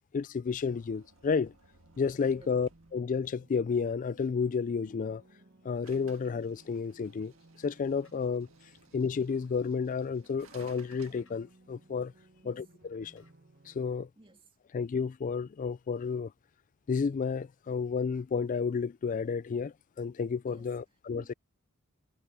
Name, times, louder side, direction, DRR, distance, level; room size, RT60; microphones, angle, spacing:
voice 1, 0.1-1.5 2.0-5.2 5.6-7.3 7.6-8.5 8.9-12.1 12.4-13.2 13.7-14.1 14.7-16.3 16.9-21.3, left 5 dB, 35° left, 0.3 m, -31 dB
sound 1, 0.6-3.3 5.8-11.2, right 4 dB, 75° right, 1.6 m, -60 dB
sound 2, 1.8-13.9, right 2 dB, 50° right, 1.4 m, -61 dB
sound 3, 5.9-13.3, left 2 dB, 70° left, 5.5 m, -72 dB
voice 2, 14.2-14.6 20.5-20.8 21.1-21.3, right 1 dB, 25° right, 2.3 m, -56 dB
head